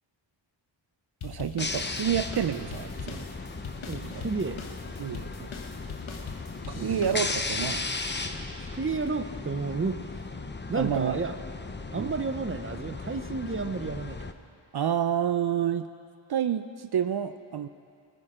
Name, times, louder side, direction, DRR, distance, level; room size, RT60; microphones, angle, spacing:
sound 1, 1.2-7.7, left 5 dB, 75° left, 1.3 m, -42 dB
voice 1, 1.2-3.2 4.0-4.3 5.0-5.5 6.7-7.9 10.7-11.2 12.0-12.1 14.7-15.9 16.3-17.7, right 9 dB, 55° right, 10 dB, 0.5 m, -29 dB
sound 2, 1.6-14.3, left 3 dB, 25° left, 0.7 m, -36 dB
voice 2, 3.9-4.6 6.8-7.1 8.6-10.0 10.7-11.4 11.9-14.2, right 4 dB, 25° right, 9 dB, 0.8 m, -31 dB
20.0 x 9.9 x 5.0 m, 2.4 s
wide cardioid pair, 65°, 47 cm